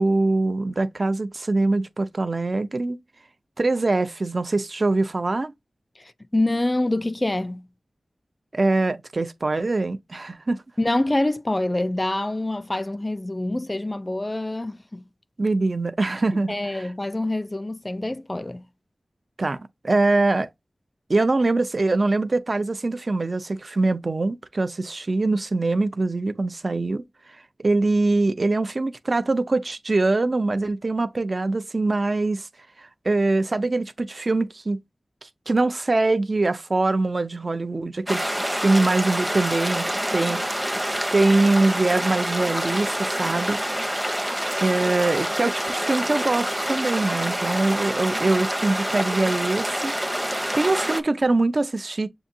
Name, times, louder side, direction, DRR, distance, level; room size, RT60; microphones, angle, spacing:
voice 1, 0.0-3.0 3.6-5.5 8.5-10.6 15.4-16.9 19.4-20.5 21.1-27.0 27.6-32.5 32.8-34.8 35.2-40.6 41.1-43.6 44.6-49.9 50.2-52.1, right 2 dB, 55° right, 0.5 m, -23 dB
voice 2, 6.0-7.7 10.8-15.0 16.5-18.6, left 1 dB, 30° left, 0.4 m, -26 dB
sound 1, 38.1-51.0, equal, 5° right, 0.7 m, -27 dB
7.0 x 2.7 x 2.6 m
wide cardioid pair, 55°, 0 cm